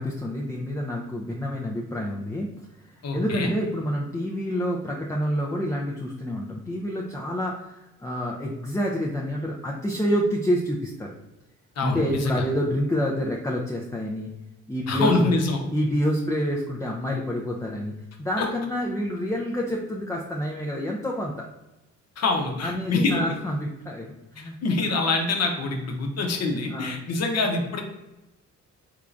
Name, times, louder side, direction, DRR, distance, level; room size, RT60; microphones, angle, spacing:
voice 1, 0.0-2.5 2.8-11.1 11.8-14.3 14.7-15.1 15.7-17.9 18.2-21.3 22.6-24.6 26.7-26.9, equal, 10° left, -1 dB, 0.4 m, -28 dB
voice 2, 3.0-3.5 11.8-12.5 14.9-15.6 18.4-18.5 22.2-23.2 24.4-27.8, left 3 dB, 55° left, 3 dB, 0.8 m, -25 dB
3.6 x 3.3 x 2.5 m, 1.0 s
cardioid pair, 90°, 30 cm